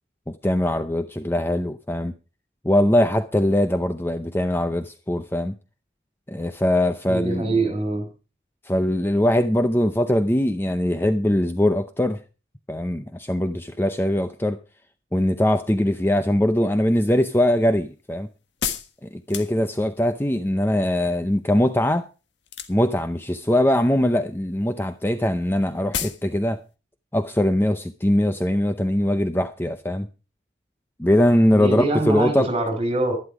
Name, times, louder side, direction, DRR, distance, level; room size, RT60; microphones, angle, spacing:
voice 1, 0.3-2.1 2.6-5.5 6.3-7.5 8.6-12.2 12.7-14.6 15.1-18.3 19.0-22.1 22.7-26.6 27.1-30.1 31.0-32.5, left 1 dB, 10° left, 0.6 m, -21 dB
voice 2, 7.1-8.1 31.5-33.1, right 2 dB, 30° right, 5.0 m, -24 dB
sound 1, 17.0-20.0 22.4-23.0 23.4-23.9 24.2-24.4 24.7-24.8 25.0-25.1 25.4-25.5 25.9-26.3 26.6-26.7, left 8 dB, 75° left, 1.6 m, -31 dB
12.0 x 11.5 x 4.8 m
head